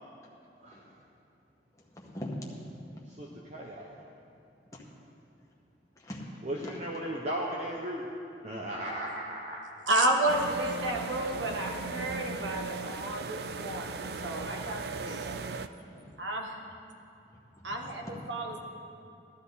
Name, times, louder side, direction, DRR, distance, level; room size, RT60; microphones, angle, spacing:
voice 1, 0.6-0.9 3.1-4.0 6.4-8.1 8.4-9.6, right 1 dB, 40° right, -3 dB, 1.0 m, -36 dB
voice 2, 1.9-2.6 4.7-4.8 6.0-6.3 14.6-14.7 15.9-16.1 17.3-18.2, left 1 dB, 15° left, -3 dB, 1.8 m, -42 dB
voice 3, 9.9-15.3 16.2-16.6 17.6-18.6, right 1 dB, 85° right, 1 dB, 1.6 m, -31 dB
sound 1, 10.3-15.7, right 4 dB, 60° right, 0.5 m, -37 dB
17.5 x 12.5 x 4.2 m, 2.7 s
head